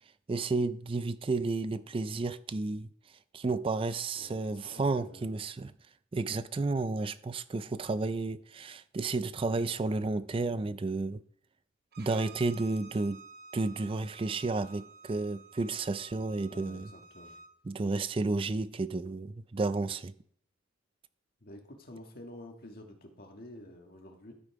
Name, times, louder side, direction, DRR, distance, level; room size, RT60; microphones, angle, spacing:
voice 1, 0.3-2.9 3.3-5.7 6.1-11.2 12.0-13.2 13.5-16.9 17.7-20.1, right 3 dB, 25° right, 0.3 m, -32 dB
voice 2, 4.1-5.3 16.4-17.4 21.4-24.3, left 1 dB, 50° left, 1.5 m, -49 dB
Bowed string instrument, 11.9-17.5, right 4 dB, 50° right, 0.8 m, -53 dB
12.5 x 5.4 x 4.7 m
head